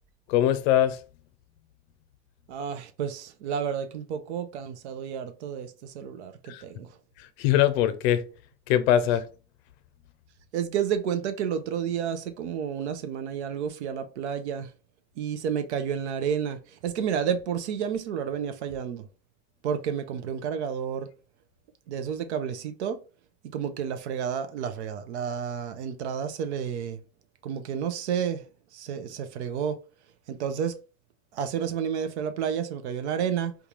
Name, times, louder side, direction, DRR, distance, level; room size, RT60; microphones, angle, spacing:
voice 1, 0.3-1.0 6.5-6.6 7.2-8.2 8.7-9.2, left 11 dB, 65° left, 0.5 m, -22 dB
voice 2, 2.5-6.9 10.5-14.7 15.2-19.1 19.6-21.1 21.9-23.0 23.5-27.0 27.4-28.4 28.7-29.8 30.3-30.8 31.3-33.6, right 8 dB, 80° right, 0.5 m, -30 dB
3.6 x 2.3 x 3.0 m
hypercardioid pair, 80°, 33 cm